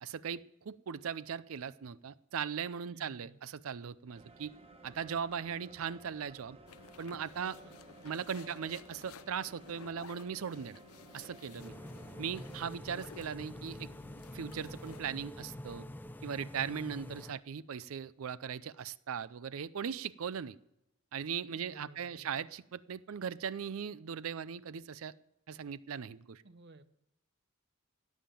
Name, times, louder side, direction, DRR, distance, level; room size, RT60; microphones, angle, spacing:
voice 1, 0.0-4.5 4.8-6.6 7.0-7.6 8.0-10.8 11.1-11.7 12.2-13.9 14.3-15.9 16.2-20.6 21.1-25.1 25.5-26.4, right 7 dB, 75° right, 18 dB, 0.5 m, -39 dB
voice 2, 2.8-3.4 7.4-7.7 8.1-8.5 16.6-17.0 21.5-22.5 26.4-26.9, right 2 dB, 55° right, 12 dB, 0.9 m, -57 dB
sound 1, 4.1-12.7, right 2 dB, 30° right, 1.1 m, -56 dB
sound 2, 6.7-15.0, left 6 dB, 85° left, 0.6 m, -55 dB
sound 3, 11.6-17.3, left 1 dB, 10° left, 0.5 m, -47 dB
17.0 x 7.4 x 9.0 m, 0.85 s
head